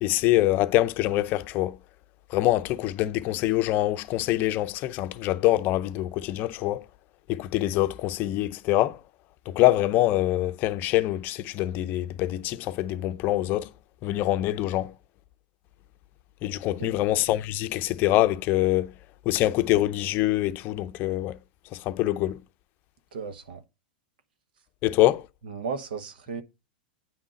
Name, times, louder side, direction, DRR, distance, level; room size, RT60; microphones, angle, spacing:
voice 1, 0.0-1.8 2.3-6.8 7.3-9.0 9.5-13.7 14.0-14.9 16.4-18.9 19.3-21.4 21.7-22.4 24.8-25.2, left 15 dB, 40° left, 0.5 m, -24 dB
voice 2, 23.1-23.6 25.4-26.4, right 5 dB, 80° right, 1.2 m, -34 dB
9.1 x 3.7 x 5.2 m
hypercardioid pair, 130°, 5 cm